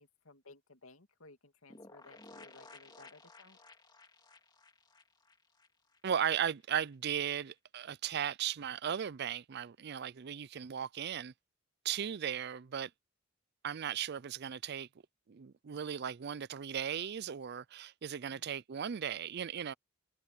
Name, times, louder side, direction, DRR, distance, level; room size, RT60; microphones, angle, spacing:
voice 1, 0.0-3.6 18.3-18.5, left 3 dB, 80° left, 2.6 m, -58 dB
sound 1, 1.7-6.3 6.6-6.7 6.9-7.0, left 3 dB, 20° left, 2.2 m, -56 dB
voice 2, 6.0-11.3 11.8-12.9 13.6-14.9 15.3-19.7, right 8 dB, 50° right, 0.4 m, -36 dB
head